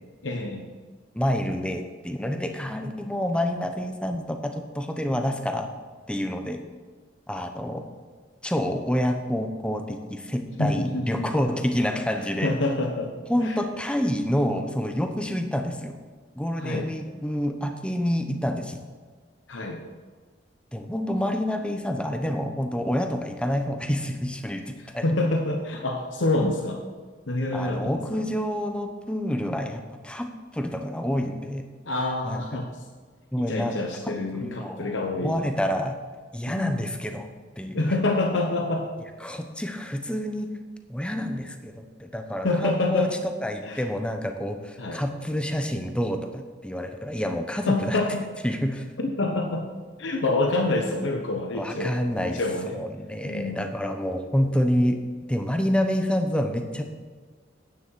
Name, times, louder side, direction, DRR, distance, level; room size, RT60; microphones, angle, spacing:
voice 1, 0.2-0.7 10.6-11.3 12.4-13.6 16.6-16.9 19.5-19.8 24.8-26.8 27.3-28.2 31.9-32.8 33.4-35.5 36.5-36.8 37.7-38.9 42.4-43.1 43.6-43.9 44.8-45.0 47.7-48.2 49.0-49.7 50.0-52.0 52.2-52.8 53.2-53.6, left 2 dB, 85° left, 2 dB, 1.0 m, -27 dB
voice 2, 1.1-5.7 6.1-6.6 7.3-7.8 8.4-12.5 13.3-16.0 16.3-18.8 20.7-25.0 27.5-31.6 32.2-32.4 33.3-33.8 34.0-35.9 36.3-37.3 37.6-37.8 39.2-40.5 40.9-43.1 43.4-48.0 48.4-48.9 51.5-52.4 52.7-55.0 55.3-56.8, equal, 5° left, 5 dB, 0.8 m, -28 dB
10.0 x 9.1 x 4.6 m, 1.5 s
head